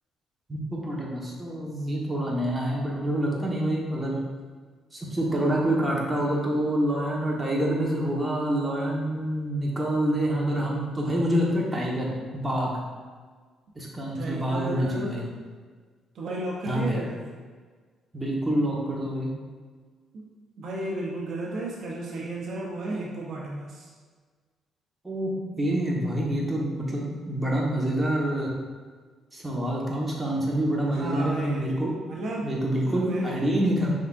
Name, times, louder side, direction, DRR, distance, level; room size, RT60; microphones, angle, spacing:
voice 1, 0.5-4.2 4.9-12.7 13.7-15.3 16.7-17.0 18.1-19.3 25.0-25.3 25.6-28.5 29.3-31.9 32.4-33.9, right 1 dB, 15° right, -3 dB, 1.1 m, -27 dB
voice 2, 14.1-15.2 16.1-17.2 20.1-20.3 20.6-23.9 30.9-32.5 32.9-33.4, right 2 dB, 65° right, -2 dB, 0.6 m, -33 dB
5.5 x 3.5 x 2.5 m, 1.5 s
cardioid pair, 80°, 0 cm